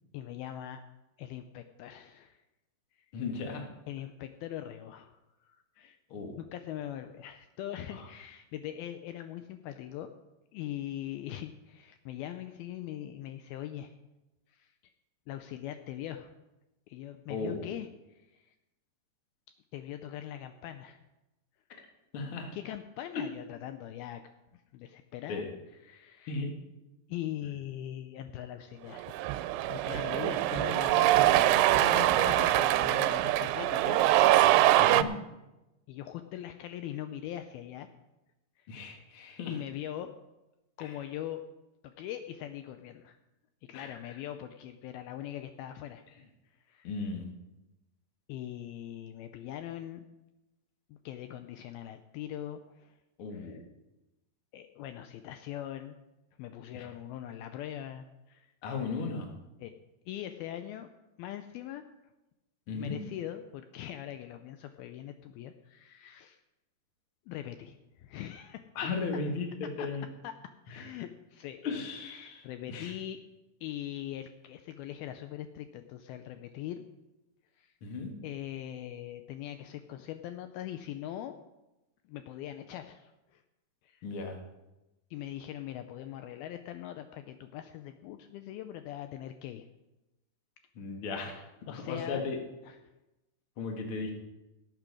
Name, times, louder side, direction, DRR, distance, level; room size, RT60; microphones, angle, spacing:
voice 1, 0.1-0.8 1.2-2.4 3.9-6.0 6.4-10.1 10.5-13.9 14.5-14.7 15.3-16.3 16.9-17.9 18.4-18.5 19.7-21.0 22.5-24.2 24.7-25.4 25.8-26.4 27.1-29.1 29.7-34.0 35.9-37.9 38.6-38.7 39.5-40.1 40.8-41.4 41.8-43.2 43.7-46.0 46.7-46.9 48.3-50.1 50.9-52.9 53.3-53.6 54.5-56.0 56.4-58.5 58.8-59.0 59.6-59.7 60.1-60.9 61.2-61.8 62.7-66.4 67.3-68.6 69.8-69.9 70.2-70.3 70.7-71.6 72.0-73.2 73.6-76.8 77.6-77.7 78.2-81.4 82.1-83.4 83.8-84.1 85.1-89.6 91.7-92.2 92.7-92.8, left 12 dB, 80° left, 8 dB, 2.3 m, -41 dB
voice 2, 3.1-3.7 6.1-6.3 7.9-8.1 17.3-17.7 22.1-22.5 25.3-25.5 26.3-26.5 34.8-35.1 38.7-39.5 40.8-40.9 43.7-43.9 46.8-47.3 53.2-53.6 56.7-56.9 58.6-59.3 62.7-63.0 68.8-70.1 70.7-70.9 71.6-72.9 77.8-78.1 84.0-84.4 90.8-92.4 93.6-94.1, left 4 dB, 45° left, 2 dB, 1.8 m, -36 dB
Cheering, 29.0-35.0, right 14 dB, 85° right, 2.6 m, -24 dB
18.0 x 9.0 x 4.8 m, 0.99 s
omnidirectional pair, 4.6 m